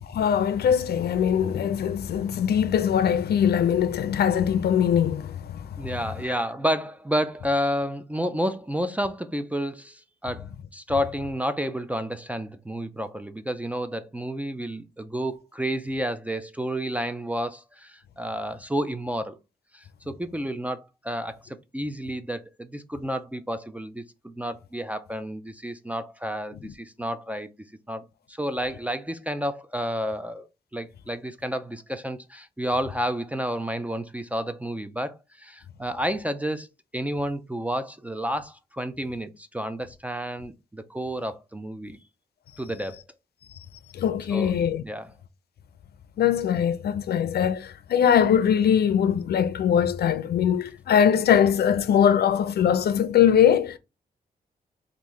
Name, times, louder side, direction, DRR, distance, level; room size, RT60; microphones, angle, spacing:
voice 1, 0.1-5.7 43.9-44.8 46.2-53.8, left 8 dB, 70° left, 0.4 m, -21 dB
voice 2, 5.8-19.4 19.7-27.5 27.9-36.7 36.9-42.0 42.6-43.0 44.3-44.6 44.8-45.1, equal, 10° right, 0.3 m, -30 dB
3.1 x 2.5 x 3.6 m
wide cardioid pair, 115°, 17 cm